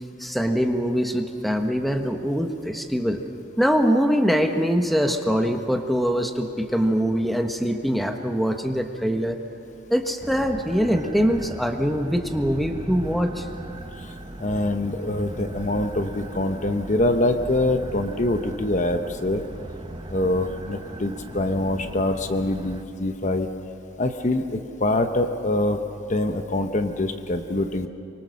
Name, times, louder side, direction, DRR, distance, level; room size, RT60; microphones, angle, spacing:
voice 1, 0.2-3.2 3.6-9.4 9.9-13.4, equal, ahead, 5 dB, 1.2 m, -23 dB
sound 1, 10.2-22.8, right 1 dB, 25° right, 0.8 m, -38 dB
voice 2, 14.4-19.4 20.1-23.5 24.0-25.8 26.1-27.9, left 1 dB, 40° left, 7 dB, 0.9 m, -24 dB
24.5 x 24.5 x 6.4 m, 2.6 s
head